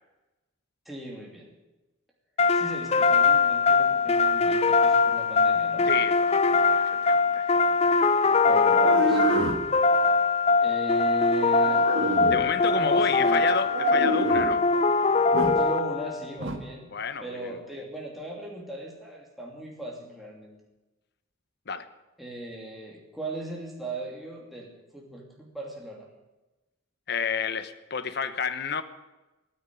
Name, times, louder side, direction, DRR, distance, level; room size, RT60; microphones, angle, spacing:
voice 1, 0.8-1.5 2.5-5.9 8.5-9.2 10.6-11.9 12.7-13.5 15.5-16.9 17.2-20.6 22.2-26.1, right 1 dB, ahead, 2.8 m, -38 dB
sound 1, 2.4-16.2, left 4 dB, 30° left, 0.5 m, -22 dB
voice 2, 5.9-7.5 12.3-14.7 16.9-17.6 21.7-21.9 27.1-28.8, left 6 dB, 55° left, 1.0 m, -30 dB
sound 2, 8.3-9.7 11.4-12.5 13.7-14.6 15.3-15.6 16.4-16.6, right 2 dB, 70° right, 1.7 m, -28 dB
15.0 x 9.6 x 9.8 m
head